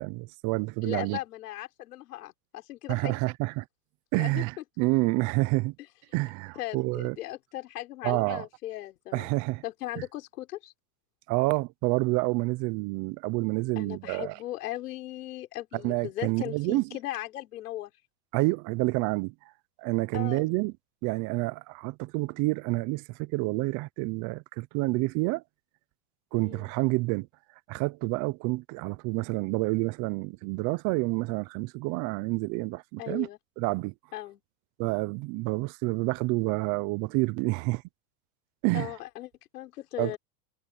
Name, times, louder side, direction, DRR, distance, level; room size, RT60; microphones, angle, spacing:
voice 1, 0.0-1.2 2.9-3.6 4.1-5.7 6.1-7.2 8.0-8.5 9.1-9.6 11.3-14.3 15.8-16.9 18.3-19.3 19.8-20.7 21.0-25.4 26.3-27.3 27.7-33.3 33.6-33.9 34.8-37.8 38.6-38.9 40.0-40.2, right 24 dB, 40° right, 0.7 m, -28 dB
voice 2, 0.8-3.1 4.2-4.6 6.6-9.3 9.6-10.7 13.8-17.9 20.1-20.5 26.3-26.7 33.0-33.4 34.1-34.4 38.7-40.2, left 15 dB, 85° left, 5.6 m, -38 dB
supercardioid pair, 135°, 45 cm